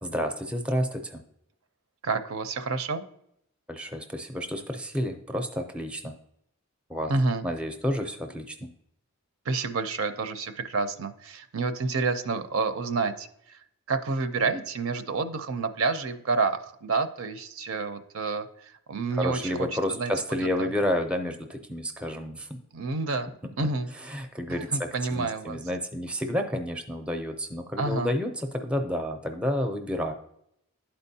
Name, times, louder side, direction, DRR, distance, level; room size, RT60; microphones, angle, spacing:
voice 1, 0.0-1.2 3.7-6.1 6.9-7.1 7.4-8.7 19.2-22.6 24.0-30.1, equal, 5° right, 5 dB, 0.5 m, -30 dB
voice 2, 2.0-3.0 7.1-7.4 9.5-13.6 13.9-20.1 20.4-20.7 22.7-23.3 23.6-23.9 24.5-25.6 27.8-28.1, right 4 dB, 70° right, 10 dB, 0.5 m, -29 dB
11.5 x 4.4 x 2.7 m, 0.76 s
head